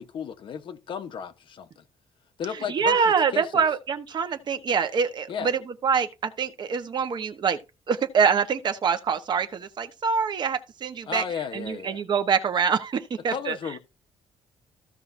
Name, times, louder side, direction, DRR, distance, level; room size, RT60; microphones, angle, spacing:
voice 1, 0.0-1.8 2.4-3.0 3.3-3.6 5.3-5.5 11.1-12.0 13.3-13.8, left 7 dB, 50° left, 1.1 m, -34 dB
voice 2, 2.7-7.6 7.9-11.2 11.5-13.6, right 6 dB, 45° right, 1.1 m, -25 dB
15.0 x 5.6 x 2.7 m
cardioid pair, 140°, 11 cm